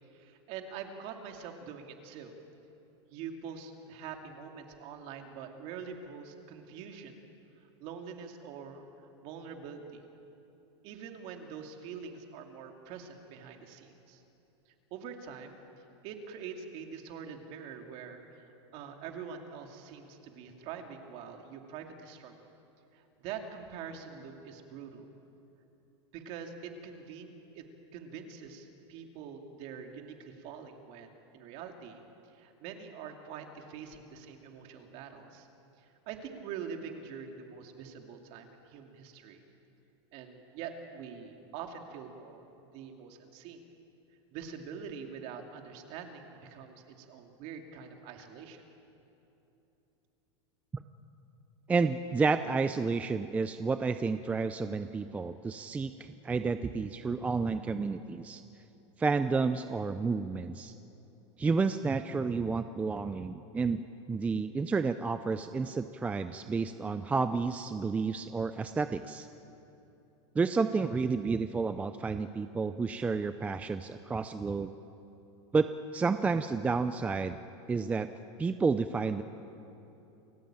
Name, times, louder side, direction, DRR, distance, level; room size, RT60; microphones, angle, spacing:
voice 1, 0.1-2.3 3.1-7.2 7.8-10.0 10.8-14.2 14.9-18.4 18.7-22.5 22.9-25.1 26.1-27.6 27.9-32.0 32.3-35.5 35.8-39.4 40.1-43.6 44.3-48.6, right 6 dB, 45° right, 4 dB, 2.6 m, -44 dB
voice 2, 51.7-58.4 59.0-60.7 61.4-63.8 64.1-69.3 70.4-74.7 75.5-77.4 77.7-78.1 78.4-79.2, right 4 dB, 10° right, 10 dB, 0.4 m, -30 dB
28.5 x 15.0 x 8.9 m, 3.0 s
supercardioid pair, 155°, 15 cm